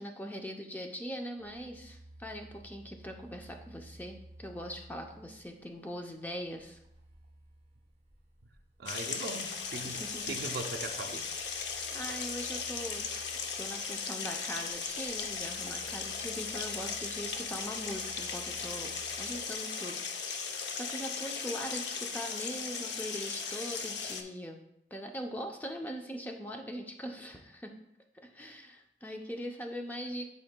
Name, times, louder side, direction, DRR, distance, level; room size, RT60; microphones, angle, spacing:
voice 1, 0.0-6.8 9.8-10.2 11.6-13.1 13.6-24.6 24.9-27.7 28.1-30.3, equal, 10° left, 3 dB, 0.5 m, -41 dB
sound 1, 1.4-19.4, right 1 dB, 35° right, 1.6 m, -56 dB
voice 2, 8.8-11.2 11.7-12.0, right 3 dB, 60° right, 3 dB, 0.5 m, -40 dB
sound 2, 8.9-24.2, left 5 dB, 80° left, 0.7 m, -37 dB
10.5 x 4.5 x 2.2 m, 0.80 s
head